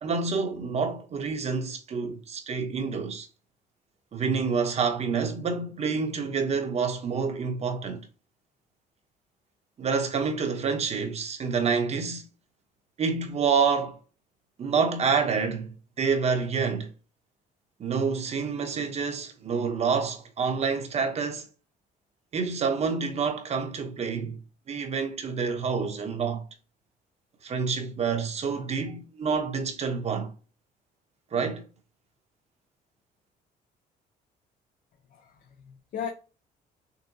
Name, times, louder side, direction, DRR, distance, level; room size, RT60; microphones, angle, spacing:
voice 1, 0.0-3.3 4.1-8.1 9.8-12.2 13.0-14.0 14.6-16.9 17.8-21.5 22.3-24.4 24.7-26.4 27.4-30.3 31.3-31.6, right 5 dB, 40° right, 0.9 m, -28 dB
voice 2, 35.1-36.1, left 8 dB, 55° left, 0.7 m, -37 dB
6.6 x 2.2 x 2.7 m
cardioid pair, 110°, 17 cm